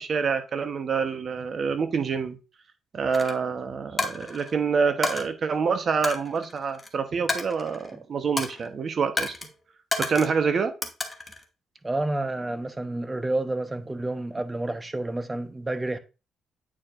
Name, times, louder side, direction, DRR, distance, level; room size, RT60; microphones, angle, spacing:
voice 1, 0.0-2.4 2.9-9.3 10.0-10.7, right 5 dB, 50° right, 1.0 m, -26 dB
Coin (dropping), 3.1-3.3 4.0-4.5 5.0-5.2 6.0-6.9 7.3-8.0 8.4-8.7 9.2-9.5 9.9-10.4 10.8-11.4, left 2 dB, 15° left, 1.1 m, -30 dB
voice 2, 11.8-16.0, right 2 dB, 15° right, 0.8 m, -29 dB
8.7 x 4.4 x 2.5 m
cardioid pair, 90°, 0 cm